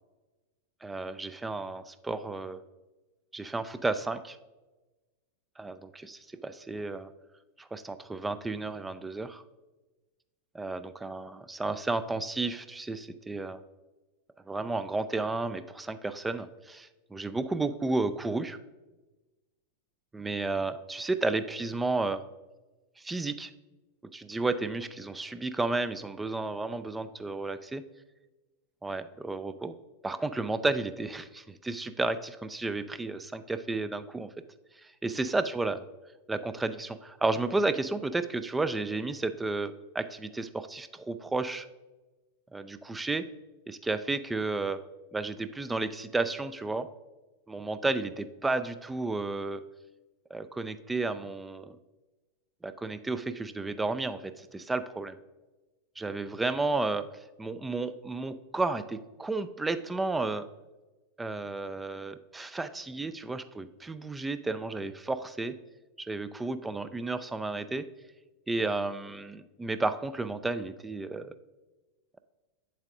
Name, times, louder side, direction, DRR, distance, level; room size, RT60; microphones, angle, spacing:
voice 1, 0.8-2.6 3.3-4.4 5.6-7.1 7.6-9.4 10.5-13.6 14.5-18.6 20.1-22.2 23.0-23.5 24.1-27.8 28.8-29.8 30.0-34.3 34.8-35.8 36.3-41.7 42.5-43.3 43.7-44.8 45.1-46.9 47.5-49.6 50.3-51.8 52.6-55.2 56.0-57.1 57.4-60.5 61.2-65.5 66.0-67.9 68.5-71.3, right 3 dB, 10° right, 12 dB, 0.3 m, -32 dB
7.9 x 7.3 x 2.4 m, 1.1 s
figure-of-eight pair, 90°, 0 cm